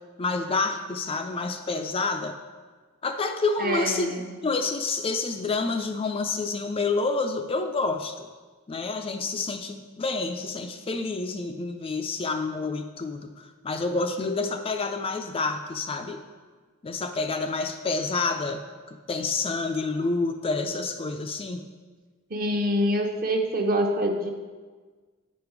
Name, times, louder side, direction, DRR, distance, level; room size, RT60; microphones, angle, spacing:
voice 1, 0.2-2.3 3.0-4.1 4.4-8.3 8.7-16.2 16.8-18.6 18.9-21.6, left 3 dB, 25° left, 5 dB, 0.3 m, -28 dB
voice 2, 3.6-4.3 22.3-24.3, equal, 40° right, 3 dB, 0.8 m, -25 dB
8.9 x 5.1 x 4.7 m, 1.4 s
head